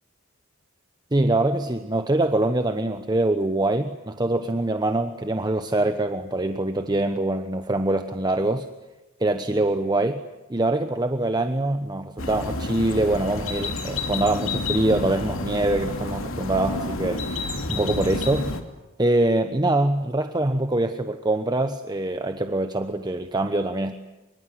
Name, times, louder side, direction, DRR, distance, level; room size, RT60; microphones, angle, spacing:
voice 1, 1.1-8.7 9.2-10.2 10.5-17.3 17.7-18.6 19.0-23.9, right 2 dB, 20° right, 8 dB, 1.0 m, -24 dB
sound 1, 12.2-18.6, left 2 dB, 75° left, 2.8 m, -30 dB
25.5 x 23.5 x 9.7 m, 1.0 s
head